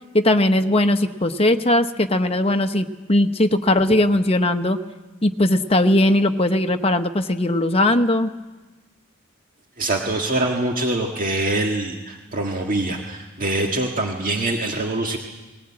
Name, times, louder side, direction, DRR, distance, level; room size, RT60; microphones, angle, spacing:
voice 1, 0.1-4.8 5.2-8.3, left 1 dB, 30° left, 7 dB, 1.0 m, -19 dB
voice 2, 9.8-15.2, right 2 dB, 40° right, 1 dB, 1.8 m, -24 dB
20.0 x 19.5 x 8.8 m, 1.2 s
head